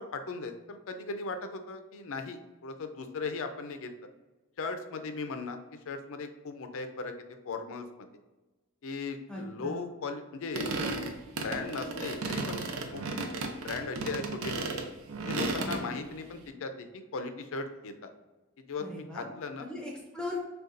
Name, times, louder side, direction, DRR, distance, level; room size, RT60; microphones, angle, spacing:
voice 1, 0.0-3.9 4.6-5.6 5.9-7.1 7.5-7.8 8.8-10.7 11.3-12.6 12.9-13.0 13.4-14.8 15.3-16.9 17.1-18.1 18.7-19.7, left 4 dB, 65° left, 7 dB, 0.5 m, -37 dB
voice 2, 9.3-9.9 15.6-16.0 18.8-19.3 19.6-20.4, left 2 dB, 5° left, -2 dB, 0.6 m, -39 dB
sound 1, 10.5-15.8, right 3 dB, 65° right, 0.5 m, -34 dB
6.4 x 2.3 x 2.5 m, 1.2 s
head